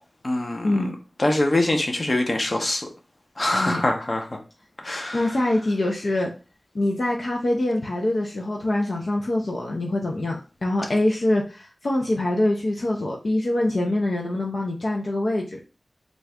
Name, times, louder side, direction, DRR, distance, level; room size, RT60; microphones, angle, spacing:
voice 1, 0.2-0.8 1.2-2.9 3.4-4.4 4.8-5.2, left 1 dB, 50° left, 3 dB, 0.9 m, -24 dB
voice 2, 5.1-6.3 6.7-15.6, left 1 dB, 70° left, -1 dB, 0.7 m, -24 dB
3.8 x 2.4 x 3.5 m, 0.32 s
cardioid pair, 40°, 0 cm